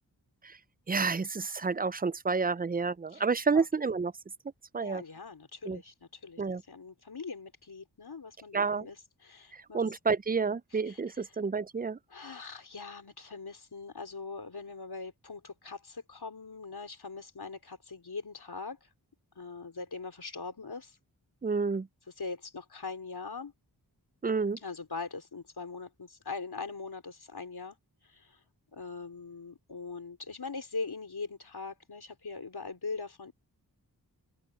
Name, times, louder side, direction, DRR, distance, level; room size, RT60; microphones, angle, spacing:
voice 1, 0.9-4.1 4.7-5.0 5.7-5.8 6.4-6.6 8.5-8.9 9.5-12.0 21.4-21.9 24.2-24.6, right 4 dB, 20° right, 0.5 m, -29 dB
voice 2, 4.8-6.4 6.7-9.8 10.7-11.0 12.1-18.9 19.4-21.0 22.2-23.5 24.6-27.8 28.1-28.4 28.7-33.3, left 4 dB, 65° left, 4.2 m, -41 dB
cardioid pair, 45°, 42 cm